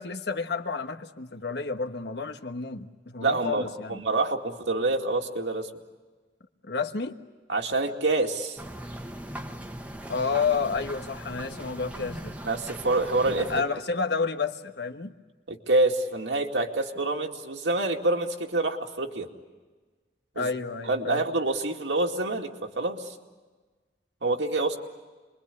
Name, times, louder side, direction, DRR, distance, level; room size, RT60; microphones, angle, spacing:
voice 1, 0.0-4.0 6.6-7.2 10.1-12.4 13.4-15.1 20.4-21.2, left 5 dB, 65° left, 7 dB, 1.3 m, -30 dB
voice 2, 3.2-5.7 7.5-8.6 12.4-13.5 15.5-19.3 20.4-20.5 20.8-23.1 24.2-24.8, right 2 dB, 85° right, 2 dB, 2.4 m, -27 dB
sound 1, 8.6-13.6, right 1 dB, 10° right, 1.2 m, -39 dB
27.0 x 23.0 x 8.5 m, 1.3 s
head